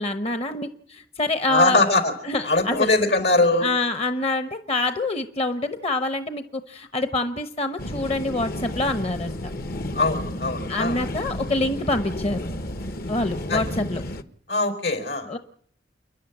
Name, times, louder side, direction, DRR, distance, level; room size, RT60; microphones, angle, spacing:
voice 1, 0.0-1.9 2.2-2.9 3.6-9.4 10.7-12.5 13.1-14.0 15.3-15.4, left 2 dB, 35° left, 9 dB, 1.0 m, -26 dB
voice 2, 1.5-2.1 2.4-3.7 9.9-11.0 13.5-13.6 14.5-15.3, left 2 dB, 80° left, 7 dB, 4.6 m, -21 dB
sound 1, 7.8-14.2, left 1 dB, 55° left, 1.2 m, -32 dB
29.5 x 11.0 x 8.6 m, 0.65 s
head